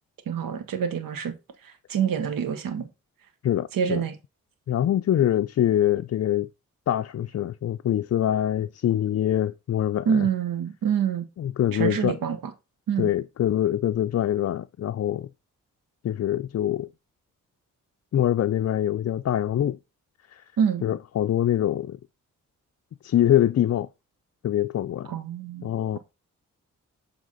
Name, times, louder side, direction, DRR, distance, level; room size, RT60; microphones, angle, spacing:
voice 1, 0.3-1.3 1.6-2.9 3.7-4.2 10.1-11.3 11.7-12.4 12.9-13.1 20.6-20.8 25.1-26.0, right 8 dB, 85° right, 1.1 m, -26 dB
voice 2, 3.4-4.0 4.7-6.5 6.9-10.3 11.4-12.2 13.0-15.3 16.0-16.9 18.1-19.8 20.3-20.4 20.8-22.0 23.0-23.9 24.4-25.1 25.6-26.0, left 11 dB, 50° left, 0.4 m, -24 dB
7.5 x 3.5 x 3.9 m
cardioid pair, 50°, 33 cm